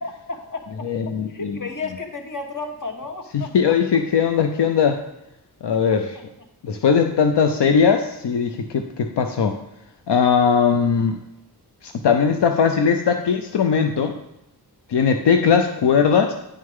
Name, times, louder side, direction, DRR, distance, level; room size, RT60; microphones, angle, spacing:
voice 1, 0.0-0.9 1.3-3.7 5.9-6.0 10.4-10.5, left 3 dB, 50° left, 4 dB, 1.3 m, -33 dB
voice 2, 0.8-1.6 3.3-5.0 5.6-6.2 6.6-9.6 10.1-11.2 11.8-14.2 14.9-16.3, left 6 dB, 80° left, 6 dB, 0.6 m, -19 dB
9.8 x 6.4 x 3.6 m, 0.87 s
wide cardioid pair, 75°, 40 cm